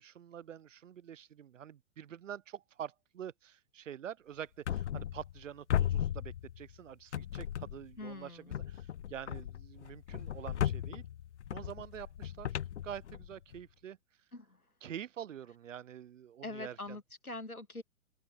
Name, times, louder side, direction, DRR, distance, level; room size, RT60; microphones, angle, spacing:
voice 1, 0.0-11.0 11.5-12.6 12.8-14.0 14.8-17.0, right 9 dB, 60° right, 0.7 m, -46 dB
sound 1, 4.6-5.4 5.7-6.8 7.1-8.0 8.5-13.6, left 10 dB, 55° left, 0.9 m, -36 dB
voice 2, 8.0-8.5 14.3-14.6 16.4-17.8, left 2 dB, 85° left, 2.2 m, -43 dB
open air
figure-of-eight pair, 115°, 42 cm